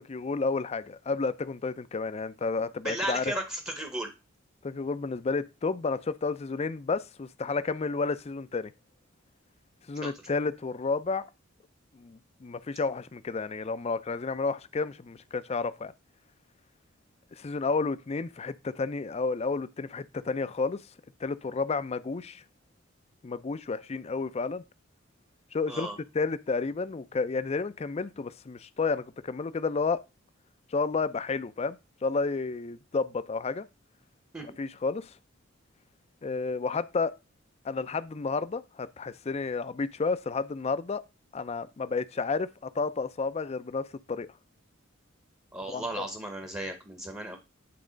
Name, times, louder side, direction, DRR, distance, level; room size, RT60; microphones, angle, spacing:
voice 1, 0.0-3.2 4.6-8.7 9.9-11.3 11.9-15.9 17.3-20.8 21.2-22.4 23.2-24.6 25.5-25.9 26.1-30.0 30.7-33.7 34.4-35.1 36.2-37.1 37.6-41.0 41.3-44.3 45.7-46.1, left 4 dB, 30° left, 0.4 m, -31 dB
voice 2, 2.8-4.1 10.0-10.1 25.7-26.0 34.3-34.4 45.5-47.4, right 1 dB, 15° right, 0.8 m, -35 dB
8.7 x 3.5 x 5.1 m
head